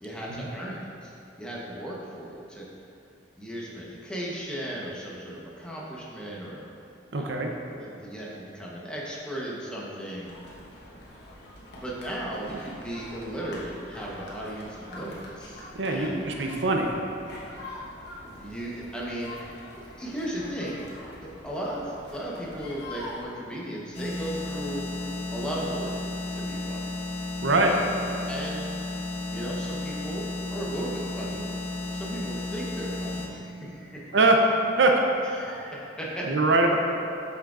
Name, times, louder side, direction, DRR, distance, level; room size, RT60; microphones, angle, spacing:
voice 1, 0.0-1.1 1.4-2.7 3.4-6.6 7.1-7.5 7.8-10.3 11.8-16.3 18.2-19.3 20.0-20.8 21.2-24.9 25.3-26.0 26.3-26.9 27.5-27.8 28.3-28.7 29.3-31.5 31.9-34.2 35.3-36.4, right 1 dB, 5° left, -5 dB, 1.0 m, -36 dB
voice 2, 7.1-7.5 15.8-16.9 27.4-27.7 34.1-34.4 34.8-35.0 36.3-36.7, right 2 dB, 75° right, 2 dB, 0.6 m, -22 dB
sound 1, 10.2-23.3, left 1 dB, 65° left, 1.2 m, -44 dB
sound 2, 23.9-33.3, left 2 dB, 35° left, 0.8 m, -33 dB
8.4 x 6.1 x 2.5 m, 2.7 s
head